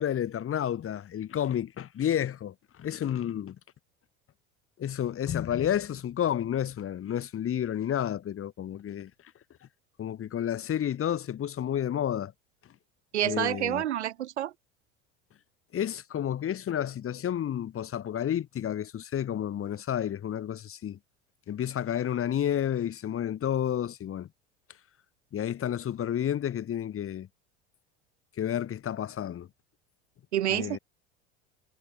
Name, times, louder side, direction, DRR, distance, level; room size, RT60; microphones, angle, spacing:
voice 1, 0.0-3.6 4.8-9.1 10.0-12.3 13.2-13.8 15.7-21.0 21.5-24.3 25.3-27.3 28.4-29.5 30.5-30.8, left 10 dB, 40° left, 5.6 m, -30 dB
voice 2, 13.1-14.5 30.3-30.8, right 12 dB, 85° right, 3.3 m, -28 dB
hypercardioid pair, 80°, 33 cm